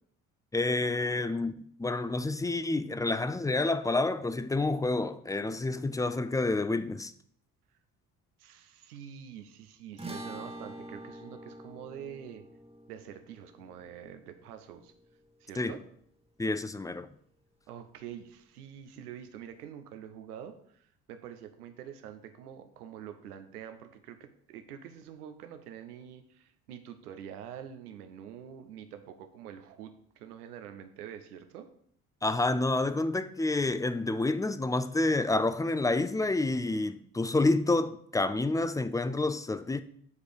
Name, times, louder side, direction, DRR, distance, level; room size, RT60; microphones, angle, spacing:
voice 1, 0.5-7.1 15.6-15.7 16.4-17.1 32.2-39.8, left 2 dB, 10° left, 0.4 m, -29 dB
voice 2, 8.4-12.4 12.9-14.9 15.4-15.8 17.7-31.7, right 9 dB, 85° right, 0.8 m, -46 dB
sound 1, 10.0-16.5, right 1 dB, 15° right, 1.2 m, -47 dB
8.3 x 4.9 x 5.1 m
figure-of-eight pair, 45°, 45 cm